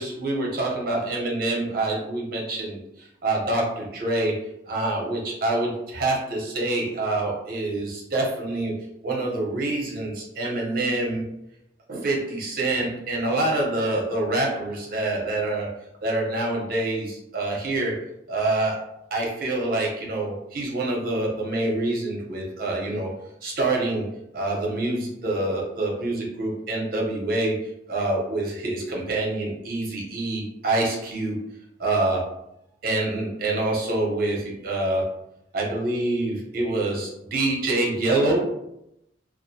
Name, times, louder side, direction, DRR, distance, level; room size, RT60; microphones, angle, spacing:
voice 1, 0.0-4.4 4.7-8.8 9.0-11.3 11.9-15.7 16.0-18.0 18.3-18.8 19.1-23.1 23.4-24.1 24.3-27.6 27.9-31.4 31.8-32.3 32.8-35.1 35.5-38.4, right 2 dB, 50° right, -1 dB, 0.6 m, -26 dB
2.3 x 2.1 x 2.6 m, 0.82 s
head